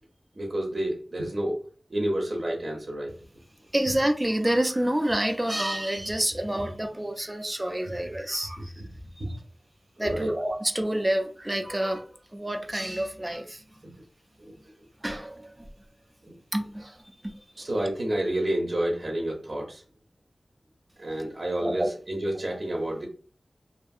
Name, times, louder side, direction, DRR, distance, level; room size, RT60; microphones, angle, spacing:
voice 1, 0.3-1.6 1.9-3.2 8.6-8.8 9.2-9.3 10.0-10.3 13.8-13.9 14.4-14.5 16.2-16.4 17.6-19.8 21.0-23.1, right 1 dB, 55° right, 0.6 m, -29 dB
voice 2, 3.7-8.8 10.0-13.8 15.0-15.7 16.5-17.7 21.6-21.9, right 1 dB, 20° right, 0.3 m, -28 dB
2.6 x 2.6 x 2.3 m
wide cardioid pair, 75°, 0 cm